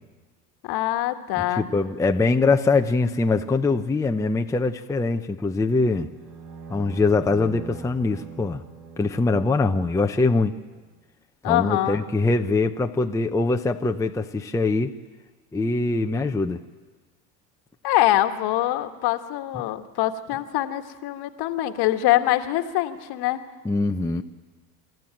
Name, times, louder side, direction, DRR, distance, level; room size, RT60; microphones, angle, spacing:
voice 1, 0.6-1.7 11.4-12.0 17.8-23.4, left 14 dB, 50° left, 8 dB, 1.6 m, -24 dB
voice 2, 1.4-6.1 6.7-8.6 9.0-10.5 11.4-14.9 15.5-16.6 23.6-24.2, left 3 dB, 5° left, 5 dB, 0.8 m, -23 dB
sound 1, 6.0-10.3, right 5 dB, 50° right, 5.0 m, -42 dB
26.5 x 13.5 x 9.0 m, 1.3 s
hypercardioid pair, 80°, 49 cm